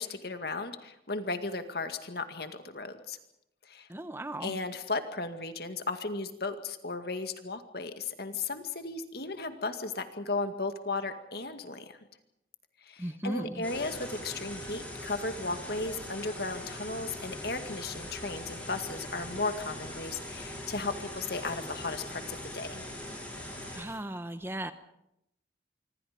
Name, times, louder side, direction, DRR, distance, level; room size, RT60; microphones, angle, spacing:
voice 1, 0.0-3.2 3.7-3.9 4.4-12.0 12.8-22.8, left 3 dB, 55° left, 8 dB, 2.1 m, -35 dB
voice 2, 3.9-4.5 13.0-13.7 23.7-24.7, right 1 dB, 10° right, 10 dB, 0.9 m, -36 dB
sound 1, 13.6-23.8, left 1 dB, 10° left, 6.3 m, -41 dB
25.5 x 25.0 x 5.3 m, 0.82 s
head